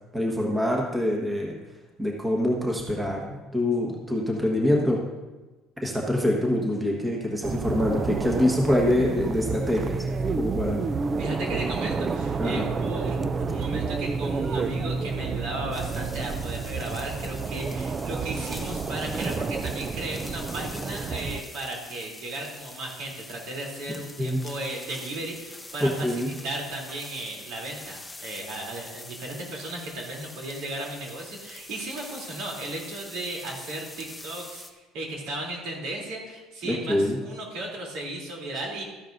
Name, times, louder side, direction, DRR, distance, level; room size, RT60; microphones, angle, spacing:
voice 1, 0.1-1.5 2.0-5.0 5.8-10.1 10.4-10.9 12.4-12.7 24.2-24.4 25.8-26.3 36.6-37.2, left 1 dB, 10° right, -1 dB, 1.3 m, -25 dB
sound 1, 7.4-21.4, right 4 dB, 25° right, 0.4 m, -30 dB
voice 2, 11.2-34.6 34.9-38.8, right 1 dB, 70° right, -1 dB, 3.1 m, -35 dB
sound 2, 15.7-34.7, left 2 dB, 5° left, 0.8 m, -44 dB
13.5 x 10.5 x 2.6 m, 1.2 s
cardioid pair, 135°, 0 cm